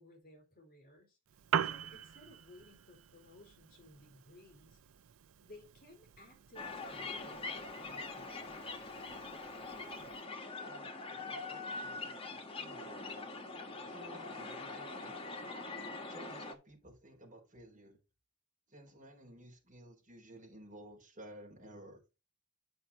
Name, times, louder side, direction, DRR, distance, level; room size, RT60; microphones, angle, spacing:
voice 1, 0.0-4.8 5.4-8.8, left 1 dB, 40° left, 3.9 m, -58 dB
Piano, 1.3-10.2, right 8 dB, 70° right, 0.5 m, -43 dB
sound 1, 6.6-16.5, left 3 dB, 25° left, 1.3 m, -43 dB
voice 2, 9.7-10.1 10.6-13.1 13.8-15.1 16.1-18.0 18.7-22.0, right 1 dB, 35° right, 3.9 m, -55 dB
8.9 x 5.6 x 4.2 m
head